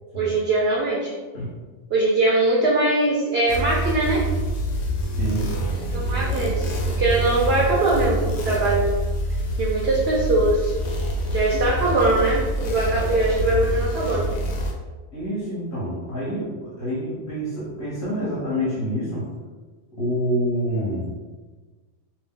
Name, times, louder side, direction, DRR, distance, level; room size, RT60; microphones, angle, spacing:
voice 1, 0.1-1.1 1.9-4.2 5.9-9.0 9.6-10.7 11.3-14.2, right 2 dB, 65° right, -3 dB, 0.6 m, -21 dB
sound 1, 3.5-14.7, right 1 dB, 85° left, 1.0 m, -26 dB
voice 2, 5.1-5.6 11.5-11.8 15.1-19.2 19.9-21.1, equal, 50° left, -9 dB, 1.1 m, -27 dB
2.7 x 2.0 x 3.5 m, 1.3 s
omnidirectional pair, 1.4 m